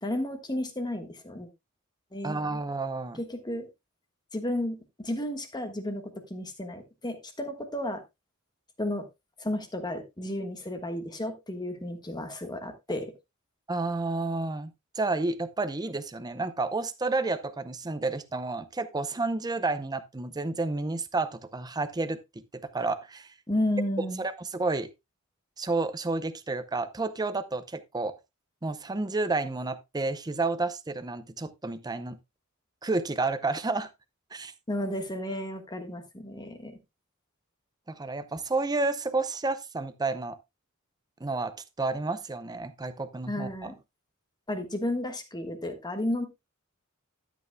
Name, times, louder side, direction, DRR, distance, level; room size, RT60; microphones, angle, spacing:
voice 1, 0.0-1.5 2.1-2.4 3.1-3.7 4.3-8.0 8.8-9.1 9.4-13.1 23.5-24.2 34.7-36.8 43.3-43.8 44.5-46.3, left 1 dB, 20° left, 1.4 m, -32 dB
voice 2, 2.2-3.2 13.7-22.2 22.6-23.3 24.2-24.9 25.6-28.1 28.6-32.2 32.8-33.9 34.3-34.5 37.9-40.4 41.2-43.7, right 3 dB, 20° right, 0.6 m, -30 dB
12.5 x 8.3 x 2.2 m
head